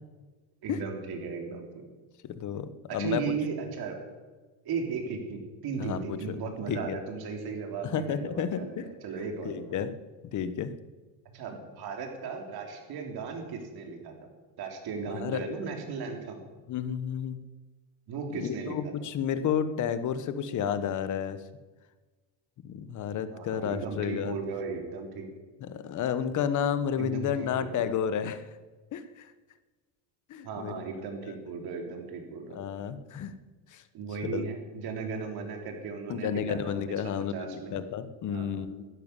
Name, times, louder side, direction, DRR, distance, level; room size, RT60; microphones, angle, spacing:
voice 1, 0.6-1.9 2.9-4.0 4.6-9.6 11.3-14.1 14.6-16.4 18.1-18.8 23.3-25.3 27.0-27.8 30.4-32.6 33.9-37.8 38.3-38.7, right 5 dB, 50° right, 3 dB, 3.6 m, -36 dB
voice 2, 2.2-3.4 5.8-6.4 6.7-7.0 7.8-8.9 9.4-9.9 10.3-10.7 15.0-15.4 16.7-17.4 18.3-21.4 22.6-24.4 25.6-28.5 28.9-29.3 30.3-30.8 31.2-31.3 32.5-33.3 33.7-33.8 34.3-34.5 36.1-38.8, left 8 dB, 40° left, 12 dB, 1.2 m, -31 dB
12.5 x 10.5 x 9.8 m, 1.3 s
supercardioid pair, 125°, 48 cm